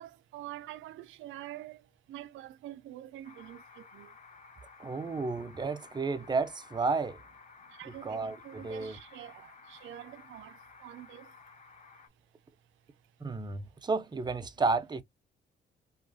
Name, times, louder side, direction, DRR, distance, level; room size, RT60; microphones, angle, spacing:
voice 1, 0.0-4.2 7.7-11.4, right 13 dB, 80° right, 0.4 m, -46 dB
sound 1, 3.2-12.1, left 5 dB, 35° left, 1.0 m, -54 dB
voice 2, 4.8-7.2 8.0-9.0 13.2-15.0, right 4 dB, 20° right, 0.5 m, -32 dB
3.0 x 2.3 x 2.6 m
cardioid pair, 90°, 20 cm